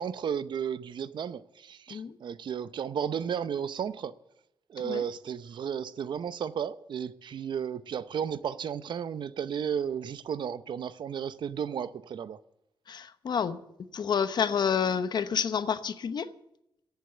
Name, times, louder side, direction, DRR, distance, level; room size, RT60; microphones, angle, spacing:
voice 1, 0.0-4.1 4.7-12.4, right 8 dB, 65° right, 0.7 m, -33 dB
voice 2, 12.9-13.6 13.9-16.3, left 7 dB, 60° left, 0.9 m, -29 dB
14.5 x 8.3 x 8.1 m
cardioid pair, 90°, 8 cm